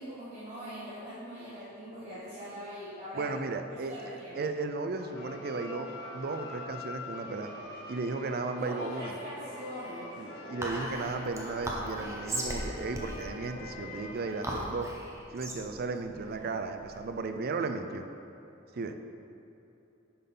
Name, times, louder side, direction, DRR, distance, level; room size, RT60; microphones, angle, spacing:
voice 1, 0.0-3.4 3.7-4.4 8.5-10.1 16.2-16.6, equal, 35° right, -12 dB, 1.7 m, -42 dB
voice 2, 3.1-7.5 7.9-9.1 10.2-14.9 15.3-18.0 18.7-19.0, right 3 dB, 50° right, 7 dB, 0.5 m, -35 dB
sound 1, 5.0-14.6, left 2 dB, 55° left, 1.4 m, -44 dB
Whispering, 10.6-17.3, right 1 dB, 15° right, 0.8 m, -38 dB
9.7 x 5.5 x 3.8 m, 3.0 s
head